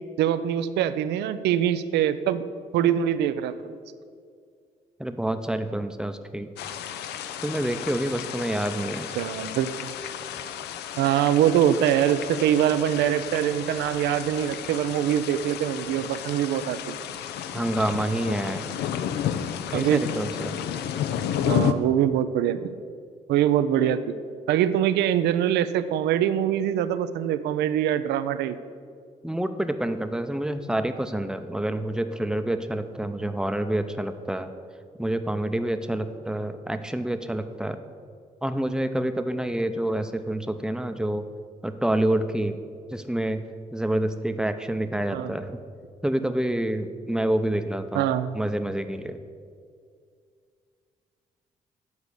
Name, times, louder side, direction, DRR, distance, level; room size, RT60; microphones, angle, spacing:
voice 1, 0.2-2.4 2.7-3.7 9.2-9.9 11.0-17.0 19.7-20.0 21.4-22.7 23.3-24.2 24.5-28.6 45.1-45.4 47.9-48.4, right 10 dB, 75° right, 13 dB, 0.4 m, -23 dB
voice 2, 5.0-6.5 7.4-9.1 17.5-18.6 19.7-20.5 29.2-34.5 35.0-37.8 38.4-41.3 41.6-42.6 42.9-43.4 43.7-45.6 46.0-49.2, right 1 dB, 5° right, 8 dB, 0.6 m, -27 dB
sound 1, 6.6-21.7, left 9 dB, 70° left, 0.5 m, -32 dB
8.2 x 4.8 x 6.8 m, 2.2 s
hypercardioid pair, 45°, 18 cm